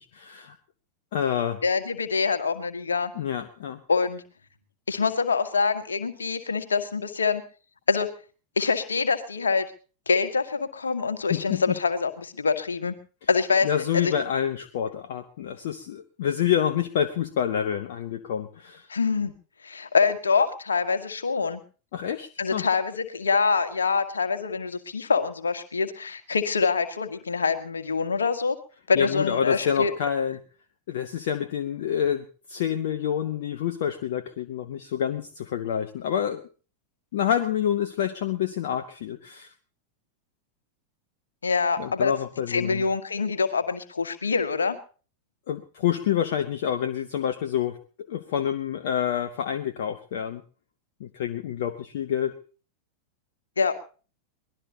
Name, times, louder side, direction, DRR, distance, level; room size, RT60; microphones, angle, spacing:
voice 1, 0.1-0.6 1.1-1.6 3.2-3.8 11.3-11.6 13.6-18.9 21.9-22.6 28.9-30.4 30.9-36.4 37.1-39.5 41.8-42.8 45.5-47.8 48.1-50.4 51.0-52.3, left 9 dB, 55° left, 8 dB, 1.0 m, -27 dB
voice 2, 1.6-3.1 3.9-4.2 4.9-7.4 7.9-8.1 8.6-9.7 10.1-12.9 13.3-13.7 13.9-14.1 18.9-19.3 19.6-21.6 22.4-28.6 28.9-29.9 41.4-42.1 42.5-44.8 53.6-53.7, left 5 dB, 70° left, 9 dB, 1.7 m, -25 dB
23.5 x 18.5 x 2.8 m, 0.38 s
figure-of-eight pair, 90°, 0 cm